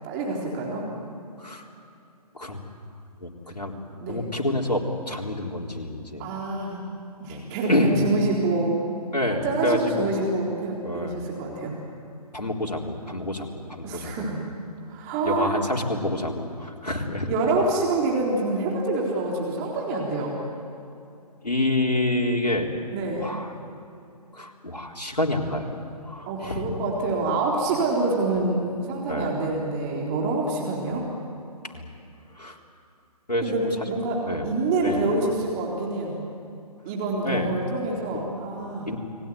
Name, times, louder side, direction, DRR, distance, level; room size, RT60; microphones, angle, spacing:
voice 1, 0.0-0.8 4.0-4.3 6.2-6.8 7.2-8.8 9.3-11.7 13.8-14.4 14.9-15.5 17.3-20.4 22.9-23.3 26.3-31.1 33.4-36.2 36.9-38.9, right 2 dB, 25° right, -2 dB, 3.9 m, -26 dB
voice 2, 3.2-3.7 4.1-4.8 5.1-6.3 7.3-8.0 9.1-10.1 10.8-11.2 12.3-13.5 13.8-14.3 15.2-17.3 21.4-22.7 23.2-23.5 24.3-25.8 26.0-26.7 29.1-29.5 31.7-31.8 32.4-32.6 33.3-33.6 34.3-34.5 34.8-35.1 37.2-37.5 38.9-39.0, left 1 dB, 85° left, 0 dB, 4.0 m, -27 dB
30.0 x 20.0 x 9.6 m, 2.6 s
figure-of-eight pair, 135°, 21 cm